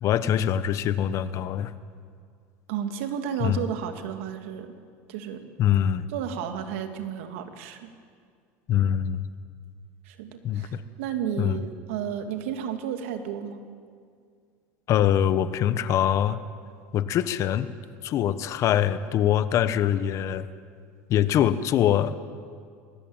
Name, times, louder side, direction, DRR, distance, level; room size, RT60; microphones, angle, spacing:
voice 1, 0.0-1.7 3.4-3.6 5.6-6.1 8.7-9.3 10.4-10.8 11.4-11.6 14.9-16.4 16.9-17.7 18.0-20.5 21.1-22.2, left 10 dB, 50° left, 13 dB, 1.1 m, -23 dB
voice 2, 2.7-4.7 5.1-5.4 6.1-7.9 10.0-13.6, right 8 dB, 85° right, 7 dB, 2.3 m, -32 dB
20.5 x 18.0 x 8.9 m, 2.1 s
supercardioid pair, 120°, 7 cm